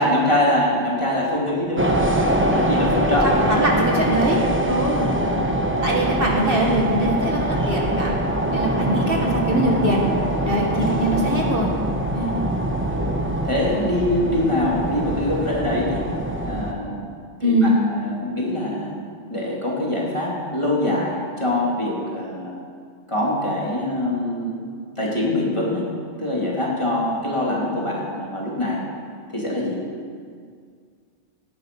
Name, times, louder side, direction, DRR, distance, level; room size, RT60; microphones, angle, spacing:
voice 1, 0.0-2.0 2.3-3.6 5.0-5.4 9.0-9.3 12.9-13.2 13.4-16.1 16.4-17.0 17.4-19.0 19.3-22.5 23.1-24.6 25.0-25.9 26.2-28.8 29.3-29.8, left 1 dB, 25° left, -4 dB, 2.9 m, -24 dB
sound 1, 1.7-16.7, right 1 dB, 10° right, 0.9 m, -23 dB
voice 2, 3.5-5.1 5.8-8.2 8.5-10.1 10.4-11.7 12.1-12.4 17.4-17.7, right 1 dB, 45° right, -1 dB, 1.8 m, -22 dB
18.0 x 10.5 x 5.3 m, 2.1 s
omnidirectional pair, 1.3 m